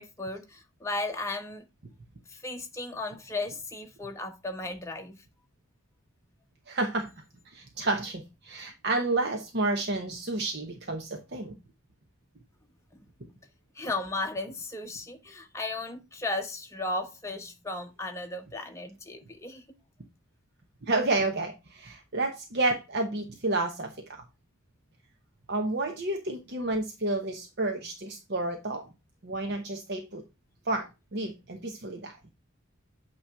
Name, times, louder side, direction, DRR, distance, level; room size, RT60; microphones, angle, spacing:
voice 1, 0.0-1.7 2.3-5.2 13.7-19.6, left 2 dB, 15° left, 1.0 m, -35 dB
voice 2, 6.7-7.1 7.5-11.6 20.8-24.2 25.5-28.8 29.2-30.2 30.7-32.2, right 2 dB, 55° right, 1.0 m, -30 dB
8.7 x 3.1 x 5.7 m
head